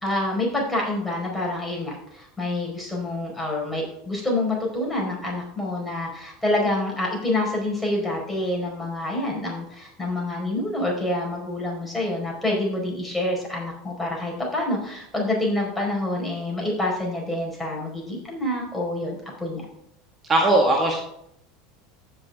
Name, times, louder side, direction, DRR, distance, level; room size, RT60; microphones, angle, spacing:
voice 1, 0.0-19.7, left 1 dB, 10° left, -2 dB, 4.6 m, -27 dB
voice 2, 20.3-21.0, right 2 dB, 25° right, 0 dB, 1.6 m, -18 dB
15.5 x 5.7 x 3.6 m, 0.76 s
hypercardioid pair, 80°, 0 cm